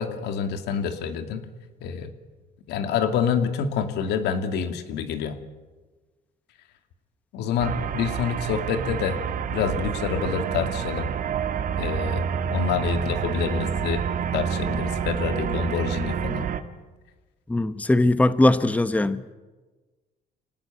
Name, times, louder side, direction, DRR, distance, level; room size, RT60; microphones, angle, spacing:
voice 1, 0.0-1.4 1.8-2.1 2.7-5.4 7.3-9.2 9.5-11.1 11.8-14.1 14.3-16.5, left 7 dB, 85° left, 2.5 m, -27 dB
sound 1, 7.6-16.6, right 7 dB, 55° right, 1.8 m, -28 dB
voice 2, 17.5-19.3, left 2 dB, 10° left, 0.9 m, -20 dB
26.0 x 19.0 x 9.1 m
cardioid pair, 110°, 17 cm